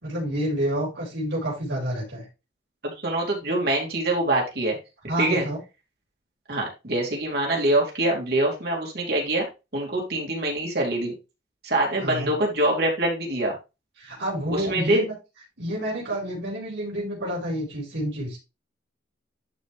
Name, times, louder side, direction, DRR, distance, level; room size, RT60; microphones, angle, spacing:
voice 1, 0.0-2.2 5.0-5.6 12.0-12.3 14.0-15.1 15.6-18.4, right 1 dB, 75° right, -5 dB, 4.4 m, -29 dB
voice 2, 3.0-4.8 5.2-5.5 6.5-9.5 9.7-11.1 11.6-13.5 14.5-15.0, right 1 dB, 55° right, -1 dB, 2.9 m, -24 dB
11.5 x 4.5 x 3.4 m, 0.27 s
head